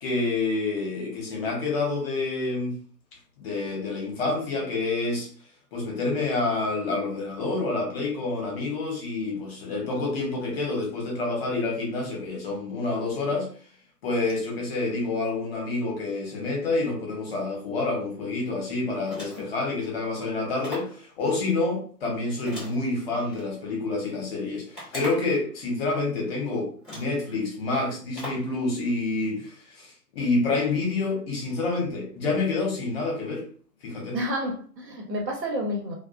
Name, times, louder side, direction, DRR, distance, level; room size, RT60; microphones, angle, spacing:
voice 1, 0.0-2.7 3.4-5.3 5.7-13.5 14.0-33.4 33.8-34.2, left 3 dB, 40° left, -1 dB, 1.0 m, -28 dB
sound 1, 19.0-19.6 20.6-21.0 22.5-23.4 24.7-25.4 26.3-26.4 26.8-27.2 28.1-28.5, left 1 dB, ahead, 0.4 m, -39 dB
voice 2, 34.1-36.0, equal, 85° right, 0 dB, 1.1 m, -30 dB
2.3 x 2.3 x 2.4 m, 0.43 s
figure-of-eight pair, 125°, 48 cm